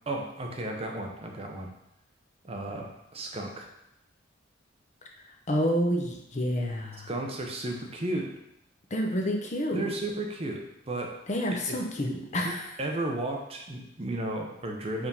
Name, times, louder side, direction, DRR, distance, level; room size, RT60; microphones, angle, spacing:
voice 1, 0.1-1.7 2.5-3.7 7.1-8.3 9.7-11.2 11.5-11.6 12.3-12.5 12.8-15.1, right 1 dB, 30° right, 2 dB, 0.7 m, -34 dB
voice 2, 5.5-7.1 8.9-9.9 11.3-12.7, equal, 35° left, 1 dB, 0.7 m, -29 dB
4.9 x 3.6 x 5.4 m, 0.79 s
head